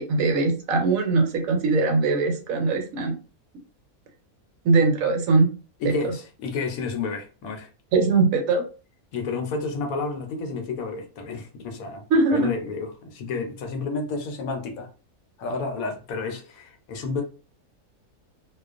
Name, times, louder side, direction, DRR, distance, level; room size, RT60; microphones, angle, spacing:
voice 1, 0.0-3.1 4.6-5.5 5.8-5.9 7.9-8.6 12.1-12.5, right 3 dB, 75° right, 1.0 m, -21 dB
voice 2, 5.8-7.7 9.1-12.0 12.3-14.9 15.4-17.2, left 4 dB, 75° left, 1.0 m, -30 dB
2.4 x 2.3 x 2.4 m
omnidirectional pair, 1.5 m